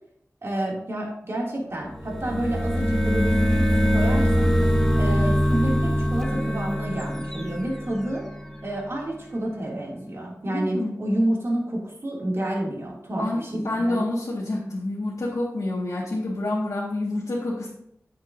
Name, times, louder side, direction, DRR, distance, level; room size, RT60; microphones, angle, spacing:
voice 1, 0.4-4.6 4.9-8.2 8.6-14.0, right 1 dB, 50° right, -3 dB, 2.7 m, -29 dB
sound 1, 1.9-8.6, equal, 10° left, 1.0 m, -23 dB
voice 2, 10.5-11.0 13.1-17.7, left 2 dB, 80° left, -7 dB, 1.8 m, -28 dB
9.2 x 8.1 x 2.7 m, 0.74 s
wide cardioid pair, 85°, 6 cm